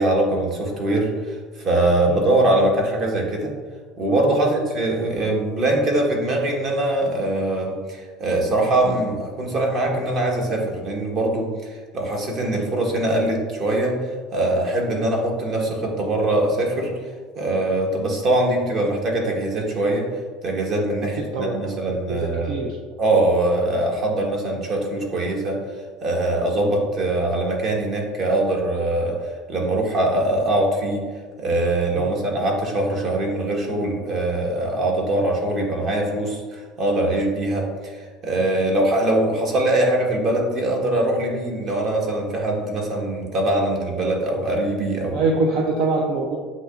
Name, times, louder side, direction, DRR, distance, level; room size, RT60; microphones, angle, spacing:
voice 1, 0.0-3.5 4.0-16.9 17.4-20.1 20.4-22.6 23.0-25.6 26.0-31.0 31.4-45.2, right 1 dB, 45° right, 0 dB, 1.2 m, -22 dB
voice 2, 21.9-22.8 32.0-32.1 45.1-46.4, right 3 dB, 65° right, 1 dB, 0.5 m, -24 dB
7.8 x 2.9 x 2.4 m, 1.5 s
supercardioid pair, 95°, 0 cm